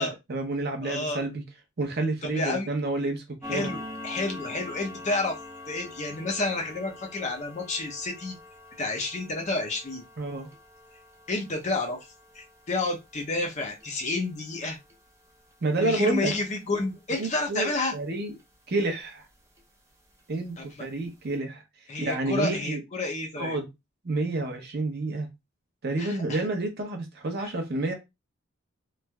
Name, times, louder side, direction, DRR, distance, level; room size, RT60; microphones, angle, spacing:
voice 1, 0.0-1.4 1.8-3.7 10.2-10.5 15.6-16.3 17.1-18.3 18.7-19.3 20.3-21.6 22.0-22.8 23.4-23.7 24.0-25.3 25.8-27.9, right 2 dB, 45° right, 0.7 m, -29 dB
voice 2, 0.8-1.2 2.2-2.7 3.5-5.4 5.7-8.4 8.8-10.0 11.3-12.0 12.3-14.8 15.8-17.9 20.6-20.9 21.9-23.6 26.0-26.4 27.4-27.5, left 2 dB, 30° left, 0.6 m, -30 dB
sound 1, 3.4-18.5 18.9-19.1 19.6-19.7 20.1-20.2 20.7-20.8 21.0-21.2, left 2 dB, 15° right, 0.5 m, -45 dB
3.1 x 2.5 x 2.2 m
head